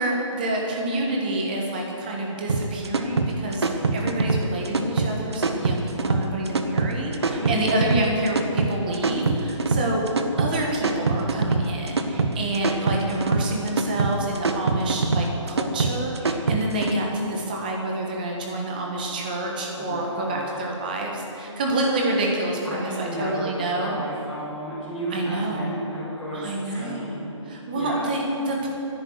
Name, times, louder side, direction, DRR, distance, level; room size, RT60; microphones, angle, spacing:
voice 1, 0.0-10.0 10.4-23.9 25.1-25.7 26.3-27.1 27.5-28.7, right 1 dB, 15° right, 0 dB, 1.4 m, -28 dB
sound 1, 2.5-16.9, right 3 dB, 55° right, 1.0 m, -24 dB
voice 2, 7.0-7.7 19.7-20.6 22.6-27.3 27.7-28.1, equal, ahead, -17 dB, 2.2 m, -33 dB
10.5 x 9.0 x 9.6 m, 2.9 s
hypercardioid pair, 180°, 16 cm